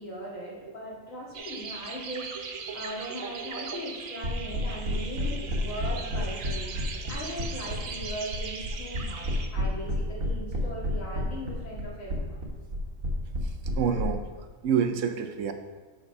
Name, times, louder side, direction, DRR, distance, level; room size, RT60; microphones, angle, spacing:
voice 1, 0.0-2.3 2.7-6.8 7.1-9.3 9.5-12.4, equal, 75° left, -4 dB, 2.4 m, -39 dB
sound 1, 1.3-9.5, right 5 dB, 50° right, 0.7 m, -39 dB
sound 2, 4.2-14.0, right 1 dB, 85° right, 1.9 m, -30 dB
voice 2, 13.4-14.2 14.6-15.5, right 7 dB, 70° right, 7 dB, 1.0 m, -28 dB
8.8 x 4.2 x 5.3 m, 1.3 s
omnidirectional pair, 1.4 m